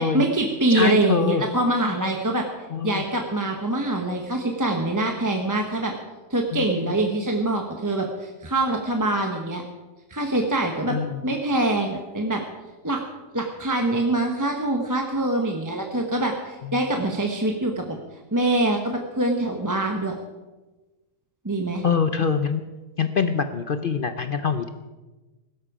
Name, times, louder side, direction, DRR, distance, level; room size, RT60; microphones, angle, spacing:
voice 1, 0.0-2.5 2.8-5.9 6.3-9.6 10.1-11.0 11.2-12.4 12.8-13.0 13.3-18.0 18.3-20.1 21.4-21.8, right 2 dB, 15° right, 2 dB, 0.9 m, -24 dB
voice 2, 0.7-1.4 2.7-3.0 6.5-6.9 10.9-11.3 16.6-16.8 21.8-22.6 23.0-24.7, left 6 dB, 55° left, 9 dB, 0.6 m, -24 dB
17.0 x 12.5 x 5.0 m, 1.2 s
omnidirectional pair, 1.7 m